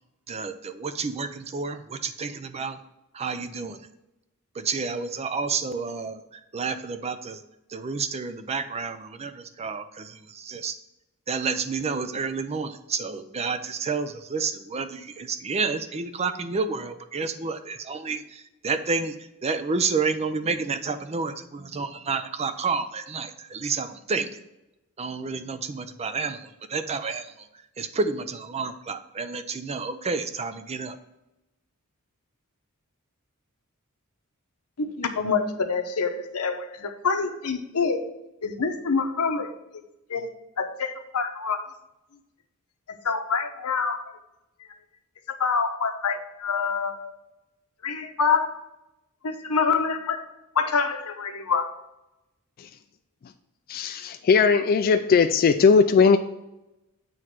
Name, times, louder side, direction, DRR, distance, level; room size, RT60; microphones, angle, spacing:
voice 1, 0.3-2.8 3.1-3.9 4.5-7.4 7.7-10.8 11.3-24.4 25.0-31.0, right 4 dB, 30° right, 0.5 m, -30 dB
voice 2, 34.8-38.0 38.4-39.5 40.1-40.3 40.6-41.7 43.0-44.0 45.3-47.1 47.8-48.6 49.2-50.2 50.5-51.7, left 5 dB, 90° left, 0.8 m, -26 dB
voice 3, 53.7-56.2, left 5 dB, 40° left, 0.3 m, -18 dB
7.8 x 3.1 x 5.8 m
head